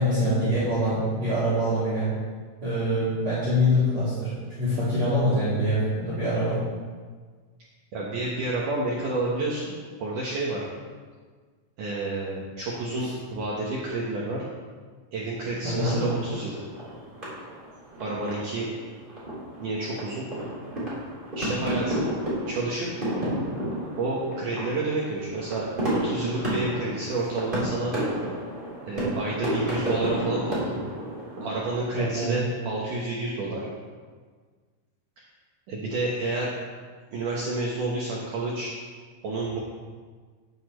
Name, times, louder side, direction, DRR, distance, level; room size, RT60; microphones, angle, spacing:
voice 1, 0.0-2.1 2.6-4.3 4.6-6.6 15.6-16.0 31.9-32.5, equal, 40° right, -10 dB, 3.6 m, -24 dB
voice 2, 7.9-9.7 10.0-10.7 11.8-14.4 15.1-16.6 18.0-18.7 19.6-20.3 21.4-22.1 22.5-22.9 23.9-27.9 28.9-30.9 31.4-33.7 35.7-36.5 37.1-38.7 39.2-39.6, right 2 dB, 90° right, -5 dB, 1.8 m, -29 dB
sound 1, 15.8-32.3, right 1 dB, 10° right, 3.0 m, -32 dB
13.0 x 9.9 x 3.2 m, 1.5 s
omnidirectional pair, 5.8 m